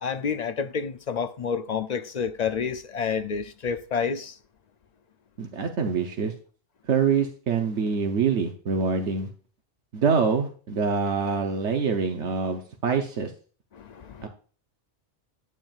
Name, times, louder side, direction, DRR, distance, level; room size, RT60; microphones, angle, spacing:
voice 1, 0.0-4.4 13.7-14.3, left 6 dB, 55° left, 0.5 m, -29 dB
voice 2, 5.4-6.3 6.9-9.3 9.9-13.3 14.2-14.3, right 5 dB, 75° right, 1.2 m, -25 dB
9.8 x 8.9 x 2.4 m
omnidirectional pair, 1.2 m